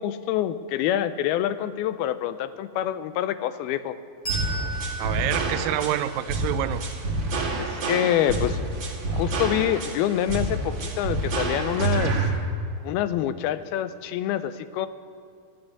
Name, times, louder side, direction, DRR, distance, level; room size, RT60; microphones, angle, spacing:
voice 1, 0.0-3.9 7.6-8.6 9.1-12.1 12.8-14.9, left 11 dB, 90° left, 13 dB, 2.6 m, -26 dB
Bell, 4.2-7.3, right 3 dB, 25° left, 5.0 m, -36 dB
sound 1, 4.3-12.3, right 3 dB, 40° right, 2.3 m, -27 dB
voice 2, 5.0-6.8, right 12 dB, 80° right, 12 dB, 2.1 m, -27 dB
13.5 x 9.1 x 9.5 m, 2.4 s
omnidirectional pair, 4.3 m